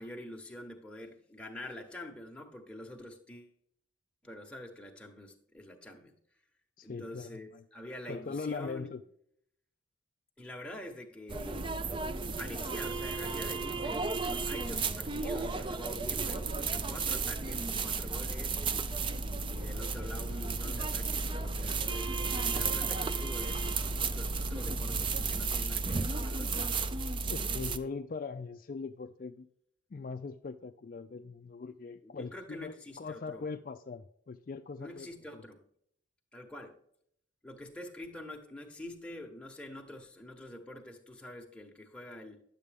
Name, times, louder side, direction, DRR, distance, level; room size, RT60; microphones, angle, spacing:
voice 1, 0.0-3.5 4.2-6.2 6.8-8.9 10.4-11.7 12.4-14.1 14.4-18.6 19.2-26.9 32.0-33.5 34.8-35.6 36.3-36.8 37.4-42.4, left 1 dB, 5° left, 1.1 m, -46 dB
voice 2, 6.8-7.6 8.1-9.0 27.2-29.5 29.9-35.4, left 4 dB, 45° left, 0.3 m, -41 dB
sound 1, 11.3-27.8, right 4 dB, 25° right, 0.4 m, -33 dB
11.0 x 7.5 x 3.5 m
head